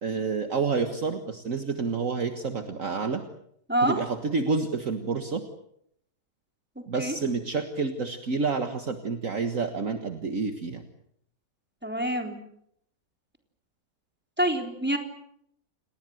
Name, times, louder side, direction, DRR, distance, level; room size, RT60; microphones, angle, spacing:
voice 1, 0.0-3.2 3.8-5.4 6.9-10.8, right 4 dB, 55° right, 7 dB, 1.9 m, -29 dB
voice 2, 6.8-7.2 11.8-12.4 14.4-15.0, right 1 dB, 5° right, 4 dB, 3.7 m, -26 dB
29.5 x 19.5 x 7.9 m, 0.72 s
omnidirectional pair, 1.7 m